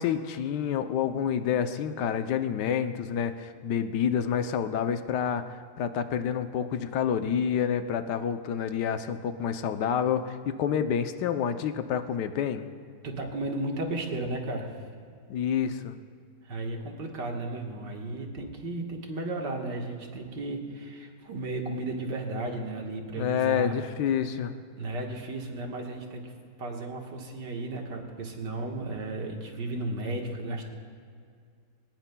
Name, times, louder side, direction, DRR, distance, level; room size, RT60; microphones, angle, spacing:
voice 1, 0.0-12.7 15.3-16.0 23.2-24.5, left 8 dB, 80° left, 9 dB, 1.3 m, -28 dB
voice 2, 13.0-14.8 16.4-23.8 24.8-26.3 26.6-30.6, right 2 dB, 85° right, 1 dB, 2.1 m, -34 dB
21.5 x 19.0 x 2.3 m, 2.3 s
omnidirectional pair, 1.8 m